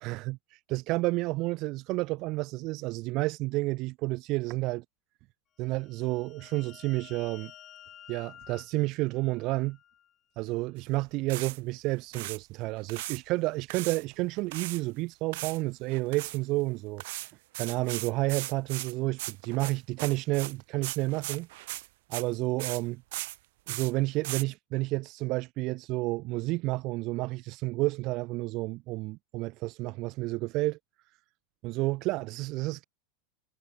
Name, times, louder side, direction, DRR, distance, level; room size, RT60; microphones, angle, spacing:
voice 1, 0.0-4.8 5.6-7.5 8.1-9.8 10.4-17.0 17.6-21.5 22.1-23.0 23.7-30.8 31.6-32.8, right 21 dB, 45° right, 0.4 m, -30 dB
sound 1, 5.7-10.1, left 11 dB, 30° left, 2.1 m, -52 dB
sound 2, 10.8-10.9 11.3-11.6 12.0-12.4 12.8-13.2 13.7-14.8 15.3-15.6 15.9-16.4 17.0-22.3 22.6-22.8 23.1-23.4 23.7-23.9 24.2-24.4, right 19 dB, 65° right, 0.9 m, -37 dB
supercardioid pair, 145°, 0 cm